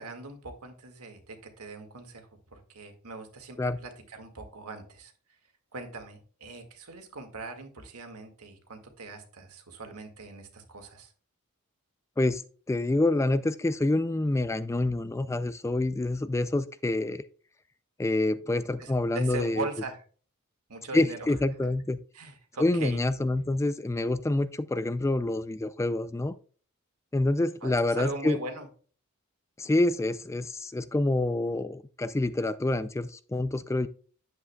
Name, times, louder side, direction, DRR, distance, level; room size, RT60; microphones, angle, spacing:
voice 1, 0.0-5.1 5.7-11.1 18.8-20.0 20.7-21.3 22.1-23.0 27.6-28.7, right 3 dB, 85° right, 5 dB, 1.9 m, -40 dB
voice 2, 12.7-17.2 18.0-19.7 20.9-22.0 22.6-26.3 27.1-28.4 29.6-33.9, left 2 dB, 15° left, 14 dB, 0.3 m, -27 dB
9.9 x 8.1 x 2.3 m, 0.41 s
head